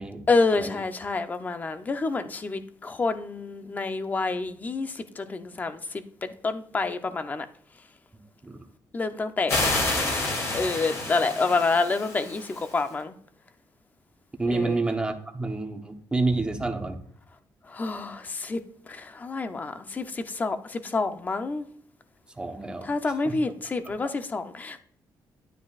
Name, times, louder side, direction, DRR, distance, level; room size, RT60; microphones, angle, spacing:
voice 1, 0.3-7.5 8.9-9.6 10.5-13.1 14.5-14.8 17.7-18.6 18.9-21.7 22.8-24.8, left 3 dB, 20° left, 0.6 m, -28 dB
sound 1, 9.5-12.8, left 2 dB, 40° left, 2.7 m, -29 dB
voice 2, 14.4-17.0 22.4-22.9 23.2-23.4 23.8-23.9, right 3 dB, 10° right, 1.0 m, -28 dB
11.5 x 9.9 x 2.4 m
cardioid pair, 170°, 8 cm